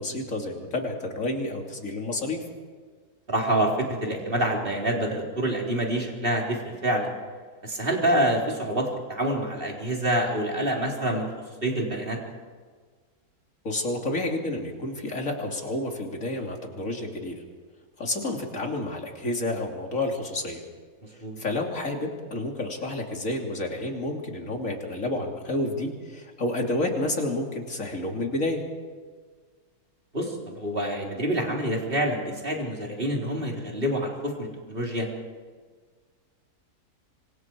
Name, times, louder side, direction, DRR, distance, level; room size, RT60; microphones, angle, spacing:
voice 1, 0.0-2.4 13.6-17.4 18.0-20.6 21.1-28.6, left 2 dB, 55° left, 1 dB, 3.4 m, -30 dB
voice 2, 3.3-7.1 7.6-11.3 11.6-12.2 21.2-21.4 30.1-35.1, right 1 dB, 35° right, -1 dB, 4.2 m, -27 dB
26.5 x 25.5 x 4.7 m, 1.5 s
omnidirectional pair, 1.6 m